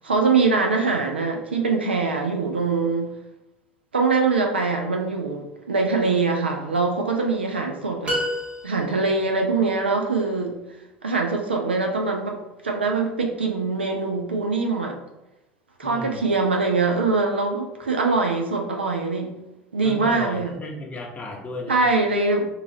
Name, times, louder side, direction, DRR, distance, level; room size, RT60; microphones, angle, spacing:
voice 1, 0.0-3.1 3.9-8.2 8.6-10.6 11.0-12.4 12.6-15.0 15.8-19.3 19.7-20.5 21.7-22.5, right 3 dB, 85° right, 2 dB, 0.4 m, -23 dB
sound 1, 8.0-9.2, equal, 25° right, 1.1 m, -28 dB
voice 2, 15.8-16.3 19.8-21.8, left 2 dB, 25° left, 0 dB, 0.7 m, -35 dB
3.0 x 2.4 x 2.6 m, 0.95 s
figure-of-eight pair, 70°, 6 cm